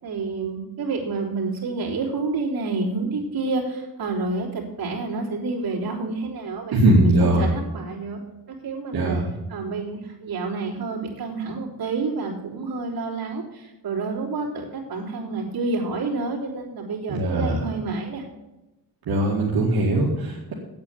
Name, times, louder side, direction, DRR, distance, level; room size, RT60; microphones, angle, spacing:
voice 1, 0.0-8.2 8.5-9.2 9.5-18.2, right 3 dB, 65° right, -3 dB, 3.5 m, -29 dB
voice 2, 6.7-7.5 8.9-9.3 17.1-17.6 19.1-20.5, right 1 dB, 85° right, -3 dB, 2.1 m, -20 dB
8.6 x 8.5 x 8.9 m, 1.0 s
wide cardioid pair, 140°, 37 cm